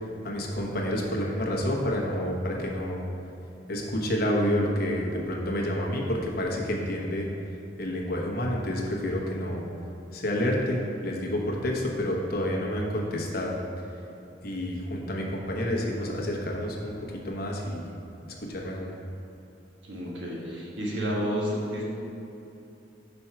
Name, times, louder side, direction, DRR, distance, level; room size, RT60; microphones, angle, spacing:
voice 1, 0.2-3.0 3.7-7.3 7.8-9.6 10.1-13.5 14.4-16.9 17.2-17.9 18.5-18.9, equal, 55° left, -1 dB, 1.0 m, -29 dB
voice 2, 19.8-21.8, equal, 90° right, -4 dB, 1.4 m, -30 dB
5.3 x 4.5 x 5.7 m, 2.8 s
head